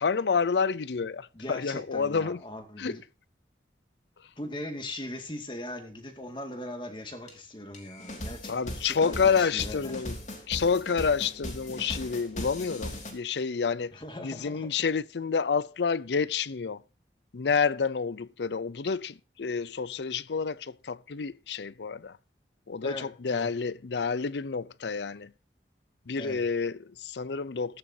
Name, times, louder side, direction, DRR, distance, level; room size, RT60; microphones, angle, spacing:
voice 1, 0.0-2.4 2.8-3.0 8.5-10.2 10.5-16.8 17.3-22.2 22.7-25.3 26.1-27.8, left 5 dB, 80° left, 0.6 m, -29 dB
voice 2, 1.3-3.0 4.4-10.0 13.9-14.7 22.8-23.5 26.2-26.4, left 1 dB, 30° left, 2.2 m, -40 dB
sound 1, 7.3-7.4 7.7-13.1, left 1 dB, 45° left, 3.2 m, -39 dB
14.5 x 14.0 x 2.8 m
head